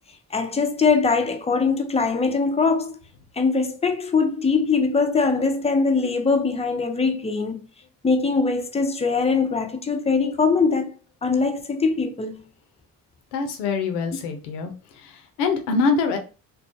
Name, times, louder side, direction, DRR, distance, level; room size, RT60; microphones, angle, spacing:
voice 1, 0.3-2.9 3.4-7.6 8.0-10.9 11.2-12.4, left 4 dB, 15° left, 0.4 m, -22 dB
voice 2, 13.3-14.7 15.4-16.2, left 4 dB, 85° left, 0.6 m, -23 dB
2.3 x 2.1 x 2.5 m
hypercardioid pair, 45°, 45 cm